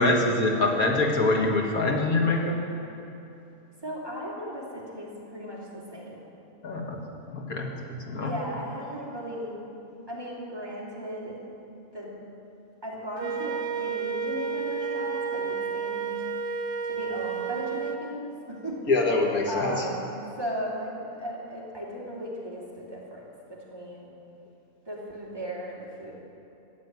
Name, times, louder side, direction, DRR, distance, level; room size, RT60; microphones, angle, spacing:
voice 1, 0.0-2.6 6.6-7.0 7.3-8.3 18.9-19.8, left 2 dB, 80° left, 0 dB, 2.2 m, -24 dB
voice 2, 3.8-6.3 8.2-9.6 10.1-11.4 11.9-12.1 12.8-16.1 16.8-18.8 19.5-20.1 20.4-24.1 24.8-26.1, equal, 15° right, -6 dB, 2.9 m, -36 dB
Wind instrument woodwind instrument, 13.2-18.0, right 6 dB, 65° right, 1.2 m, -31 dB
14.5 x 7.5 x 9.4 m, 2.8 s
omnidirectional pair, 1.5 m